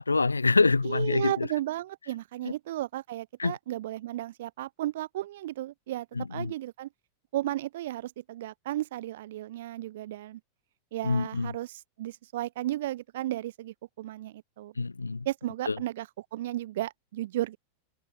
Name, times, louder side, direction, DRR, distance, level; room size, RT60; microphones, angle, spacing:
voice 1, 0.0-1.5 2.4-2.5 3.4-3.5 6.1-6.5 11.0-11.6 14.8-15.3 15.6-15.8, left 3 dB, 80° left, 3.1 m, -26 dB
voice 2, 0.8-6.9 7.3-10.4 10.9-14.7 15.3-17.6, right 14 dB, 55° right, 2.3 m, -34 dB
open air
figure-of-eight pair, 90°, 0 cm